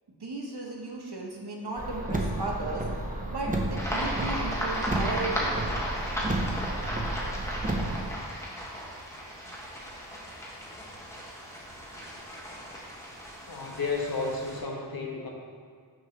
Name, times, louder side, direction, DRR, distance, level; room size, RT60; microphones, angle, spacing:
voice 1, 0.1-2.8 3.3-5.8, right 2 dB, 65° right, -2 dB, 1.1 m, -35 dB
Car, 1.8-8.1, right 1 dB, 20° right, 0.7 m, -32 dB
sound 1, 3.8-14.6, equal, 5° left, 1.2 m, -35 dB
voice 2, 13.5-15.3, left 3 dB, 55° left, 0 dB, 0.9 m, -32 dB
6.1 x 3.1 x 5.7 m, 2.1 s
wide cardioid pair, 60°, 43 cm